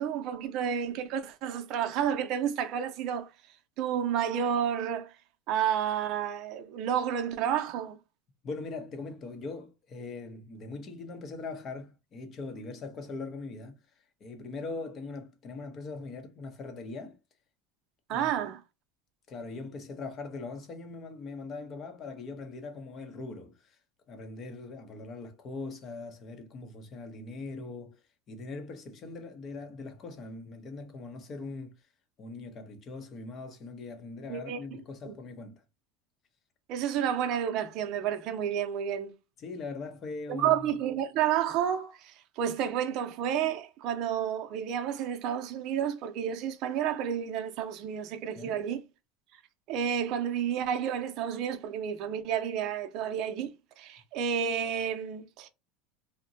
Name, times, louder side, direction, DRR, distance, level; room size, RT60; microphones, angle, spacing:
voice 1, 0.0-3.3 3.8-5.1 5.5-8.0 18.1-18.6 34.3-34.8 35.0-35.2 36.7-39.1 40.3-48.8 49.7-55.5, right 9 dB, 55° right, 0.5 m, -30 dB
voice 2, 8.4-13.8 14.2-17.2 18.1-18.3 19.3-23.8 24.1-28.0 28.3-31.8 32.2-35.6 39.4-40.6 48.3-48.6, left 3 dB, 35° left, 0.7 m, -41 dB
2.7 x 2.1 x 2.6 m
supercardioid pair, 130°, 0 cm